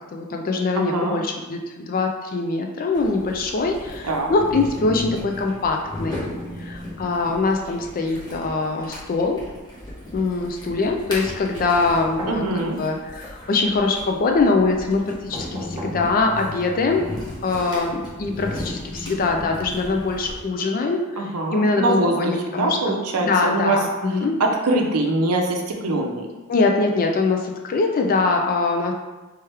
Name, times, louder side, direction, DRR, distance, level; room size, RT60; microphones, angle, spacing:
voice 1, 0.1-6.2 6.6-9.4 10.1-17.1 17.4-24.4 26.5-28.9, left 3 dB, 40° left, 3 dB, 0.4 m, -23 dB
voice 2, 0.7-1.2 4.0-4.3 12.3-12.8 21.2-23.8 24.4-26.3, right 2 dB, 80° right, 2 dB, 0.6 m, -23 dB
sound 1, 2.9-20.4, left 1 dB, 20° left, 0.9 m, -36 dB
sound 2, 11.7-12.5 15.3-16.0 17.6-17.7, equal, 20° right, 1.3 m, -35 dB
3.4 x 3.0 x 3.3 m, 1.1 s
head